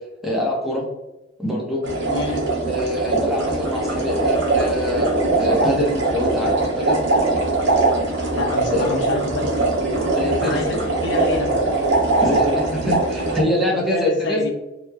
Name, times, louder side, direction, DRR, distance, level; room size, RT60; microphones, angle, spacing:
voice 1, 0.2-0.9 1.4-1.8 2.6-7.0 8.7-8.9 10.1-10.6 12.2-14.4, left 1 dB, ahead, -4 dB, 0.6 m, -24 dB
sound 1, 1.8-13.4, right 2 dB, 75° right, 0.7 m, -21 dB
voice 2, 2.1-2.4 8.3-9.6 10.3-11.7 13.7-14.5, left 2 dB, 65° left, 3 dB, 0.4 m, -27 dB
2.9 x 2.0 x 2.2 m, 0.97 s
head